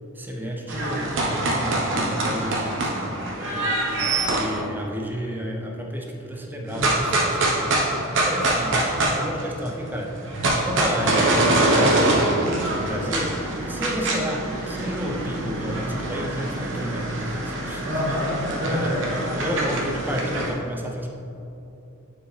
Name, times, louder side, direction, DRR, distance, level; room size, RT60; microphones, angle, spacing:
voice 1, 0.1-3.8 4.2-7.9 8.2-10.1 10.6-12.4 12.8-17.9 18.7-18.9 19.4-21.1, equal, 10° right, 0 dB, 0.6 m, -31 dB
sound 1, 0.7-4.6 6.7-9.7 10.0-20.5, right 2 dB, 60° right, 1.0 m, -24 dB
voice 2, 8.2-8.6 17.8-19.9, left 1 dB, 35° right, -8 dB, 1.4 m, -28 dB
9.2 x 4.7 x 3.3 m, 2.8 s
head